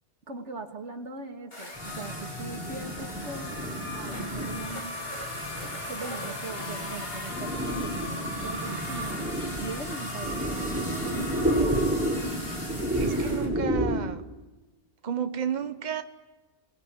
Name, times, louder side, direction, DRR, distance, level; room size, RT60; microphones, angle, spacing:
voice 1, 0.3-5.0 5.9-12.0, right 3 dB, 90° right, 4 dB, 2.7 m, -40 dB
sound 1, 1.5-13.5, left 2 dB, 55° left, 4.9 m, -38 dB
sound 2, 1.8-14.0, right 1 dB, 10° right, 3.9 m, -31 dB
sound 3, 2.9-12.7, equal, 85° left, 6.3 m, -42 dB
voice 2, 13.0-14.2 15.0-16.0, right 7 dB, 40° right, 9 dB, 1.2 m, -31 dB
28.0 x 20.0 x 9.9 m, 1.2 s
omnidirectional pair, 1.2 m